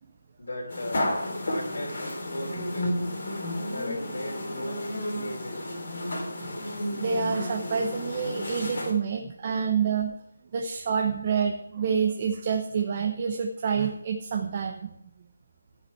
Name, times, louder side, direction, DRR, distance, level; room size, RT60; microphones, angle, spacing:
voice 1, 0.4-1.1 1.4-3.1 3.7-5.8 9.5-9.7, left 1 dB, 70° left, -4 dB, 3.1 m, -38 dB
sound 1, 0.7-8.9, left 1 dB, 50° left, 3.5 m, -32 dB
voice 2, 6.9-10.1 10.5-14.8, right 6 dB, 30° right, 2 dB, 0.8 m, -27 dB
16.5 x 5.6 x 4.5 m, 0.79 s
figure-of-eight pair, 170°, 0 cm